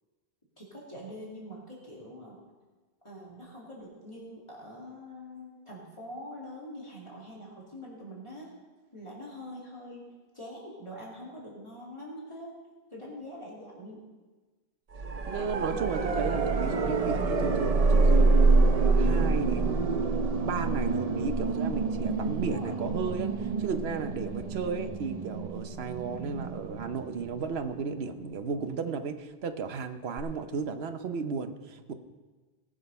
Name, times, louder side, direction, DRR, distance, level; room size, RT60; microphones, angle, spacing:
voice 1, 0.6-2.4 3.0-8.5 8.9-10.1 10.3-12.5 12.9-14.0 22.0-23.1 24.6-24.9 28.4-28.7, equal, 30° left, -6 dB, 2.7 m, -44 dB
sound 1, 14.9-27.8 30.2-30.3, right 3 dB, 40° right, 0.7 m, -26 dB
voice 2, 15.2-20.0 20.4-23.3 23.6-31.9, right 5 dB, 85° right, 9 dB, 1.1 m, -34 dB
18.5 x 6.4 x 5.4 m, 1.3 s
omnidirectional pair, 1.0 m